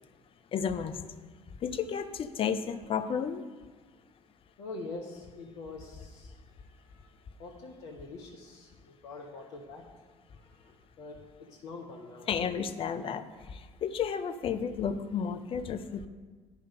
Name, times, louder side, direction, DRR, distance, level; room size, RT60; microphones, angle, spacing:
voice 1, 0.5-1.0 1.6-3.4 12.3-16.1, left 7 dB, 40° left, 9 dB, 0.7 m, -32 dB
voice 2, 4.6-6.3 6.6-7.1 7.4-9.9 10.3-12.3, left 3 dB, 60° left, 0 dB, 1.0 m, -45 dB
10.5 x 5.1 x 5.3 m, 1.4 s
figure-of-eight pair, 55°, 14 cm